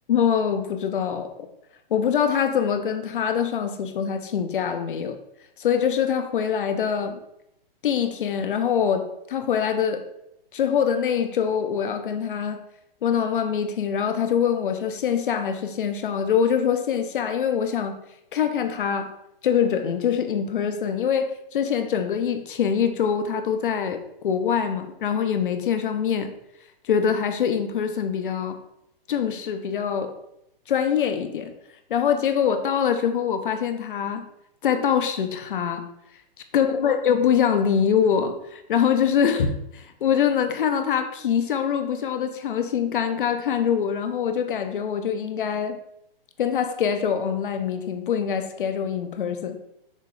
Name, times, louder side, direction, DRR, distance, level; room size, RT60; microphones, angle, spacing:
voice 1, 0.1-1.5 1.9-5.2 5.6-7.2 7.8-10.0 10.5-12.6 13.0-17.9 18.3-19.1 19.4-26.3 26.9-28.6 29.1-30.1 30.7-31.5 31.9-34.3 34.6-35.8 36.5-45.8 46.4-49.6, left 7 dB, 60° left, 7 dB, 0.9 m, -24 dB
6.6 x 3.2 x 4.9 m, 0.79 s
hypercardioid pair, 170°, 30 cm